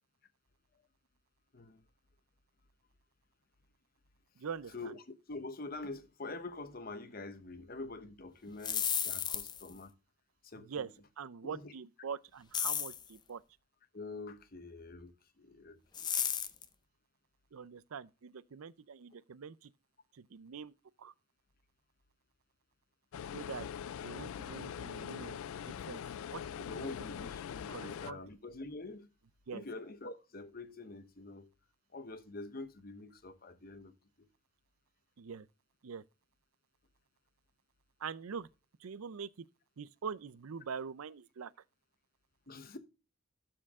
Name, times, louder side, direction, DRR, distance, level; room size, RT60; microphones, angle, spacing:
voice 1, 1.5-1.8 4.7-9.9 10.4-10.9 11.4-11.7 13.9-16.1 26.7-29.1 29.5-31.5 31.9-34.3 42.5-42.8, left 3 dB, 45° left, 0.9 m, -46 dB
voice 2, 4.4-4.9 10.6-10.9 11.2-13.4 17.5-19.7 20.1-20.7 21.0-21.1 23.3-23.7 24.0-26.0 26.3-26.9 27.7-28.2 29.5-29.6 35.2-35.5 35.8-36.0 38.0-38.5 38.8-39.5 39.8-41.5, right 6 dB, 85° right, 0.5 m, -44 dB
sound 1, 8.5-9.7 12.5-13.1 15.9-16.6, left 8 dB, 20° left, 0.5 m, -33 dB
sound 2, 23.1-28.1, left 8 dB, 75° left, 0.3 m, -42 dB
12.0 x 4.5 x 3.6 m
head